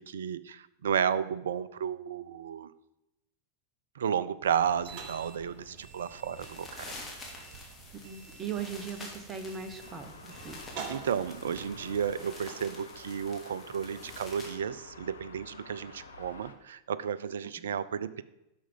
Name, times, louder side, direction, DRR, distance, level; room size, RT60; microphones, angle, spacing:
voice 1, 0.0-2.7 4.0-6.9 10.9-18.2, right 8 dB, 65° right, 16 dB, 0.5 m, -32 dB
sound 1, 4.4-12.1, right 5 dB, 45° right, 1.3 m, -47 dB
sound 2, 6.3-14.6, left 2 dB, 15° left, 2.8 m, -48 dB
voice 2, 8.0-10.6 17.6-17.8, right 7 dB, 20° right, 8 dB, 1.1 m, -39 dB
sound 3, 9.8-16.5, left 4 dB, 75° left, 1.0 m, -50 dB
11.0 x 6.1 x 5.4 m, 0.91 s
figure-of-eight pair, 90°, 0 cm